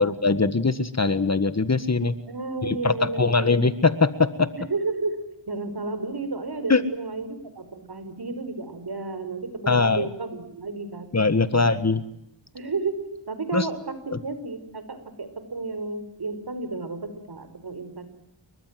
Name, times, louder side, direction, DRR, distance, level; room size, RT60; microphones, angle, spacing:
voice 1, 0.0-2.1 2.7-4.5 6.7-6.8 9.7-10.0 11.1-12.0 13.5-13.7 14.1-14.2, left 4 dB, 35° left, 13 dB, 1.7 m, -21 dB
voice 2, 2.3-3.7 4.5-11.1 11.5-11.7 12.5-18.1, right 3 dB, 55° right, 11 dB, 5.6 m, -32 dB
29.5 x 23.5 x 7.8 m, 0.78 s
wide cardioid pair, 75°, 46 cm